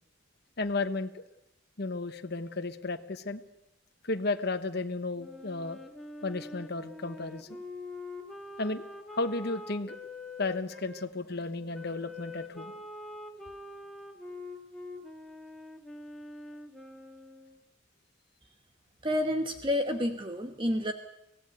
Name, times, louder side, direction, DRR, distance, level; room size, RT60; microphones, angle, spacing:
voice 1, 0.6-1.2 1.8-3.4 4.0-5.8 6.2-7.6 8.6-8.8 9.1-10.0 10.4-12.8, left 3 dB, 55° left, 8 dB, 1.2 m, -33 dB
Wind instrument woodwind instrument, 5.2-11.1 11.7-17.6, left 2 dB, ahead, 2.1 m, -44 dB
voice 2, 19.0-20.9, left 1 dB, 25° right, 6 dB, 1.2 m, -29 dB
24.5 x 17.0 x 8.1 m, 0.88 s
head